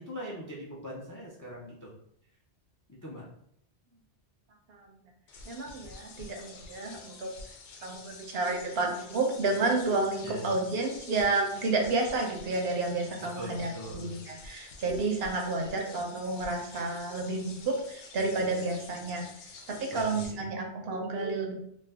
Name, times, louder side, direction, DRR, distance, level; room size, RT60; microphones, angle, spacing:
voice 1, 0.0-1.9 3.0-3.2 10.2-10.6 13.4-14.1 19.9-20.5, right 1 dB, 30° left, -4 dB, 0.3 m, -41 dB
sound 1, 5.3-20.3, left 4 dB, 85° left, 0.9 m, -49 dB
voice 2, 5.5-7.3 7.8-19.3 19.6-21.5, right 3 dB, 65° right, 2 dB, 0.8 m, -30 dB
2.5 x 2.1 x 3.3 m, 0.70 s
omnidirectional pair, 1.2 m